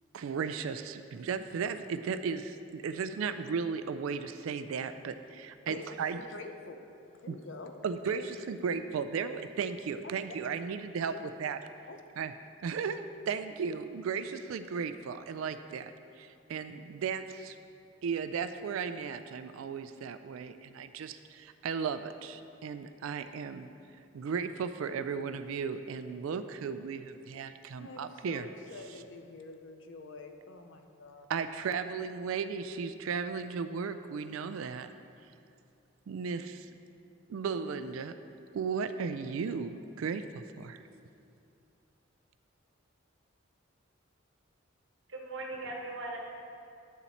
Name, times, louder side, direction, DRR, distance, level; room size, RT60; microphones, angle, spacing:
voice 1, 0.1-6.2 7.3-7.4 7.8-11.1 11.4-11.6 12.2-12.3 12.6-17.6 18.0-23.7 24.1-28.4 31.3-34.9 36.1-36.7 37.3-38.1 38.5-40.8, right 6 dB, 80° right, 10 dB, 0.3 m, -35 dB
voice 2, 5.7-6.9 7.2-7.8 8.2-8.3 11.1-11.2 11.9-12.0 27.8-31.3, left 2 dB, 65° left, 5 dB, 0.7 m, -46 dB
voice 3, 45.1-46.2, right 2 dB, 60° right, 0 dB, 1.3 m, -39 dB
9.5 x 7.0 x 4.2 m, 2.6 s
head